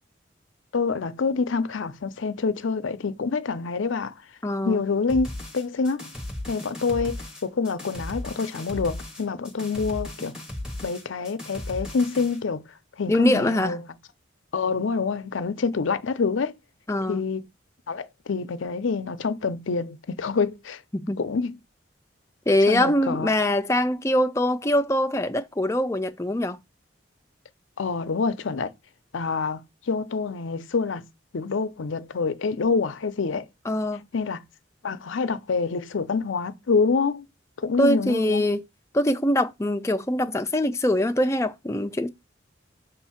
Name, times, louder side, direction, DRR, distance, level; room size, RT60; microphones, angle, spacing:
voice 1, 0.7-4.1 4.6-5.3 5.5-6.1 6.5-10.3 10.8-12.6 13.0-13.8 14.5-16.5 17.1-17.4 17.9-20.8 21.2-21.5 22.7-23.3 27.8-28.7 29.1-31.1 31.3-33.5 34.1-34.4 34.8-37.3 37.6-38.4, left 4 dB, 85° left, 0.6 m, -26 dB
voice 2, 4.4-4.8 13.1-13.8 16.9-17.2 20.9-21.2 22.5-26.6 33.7-34.1 37.8-38.6 38.9-42.1, left 1 dB, 15° left, 0.4 m, -23 dB
sound 1, 5.1-12.4, left 1 dB, 5° right, 1.1 m, -36 dB
6.7 x 2.7 x 5.7 m
head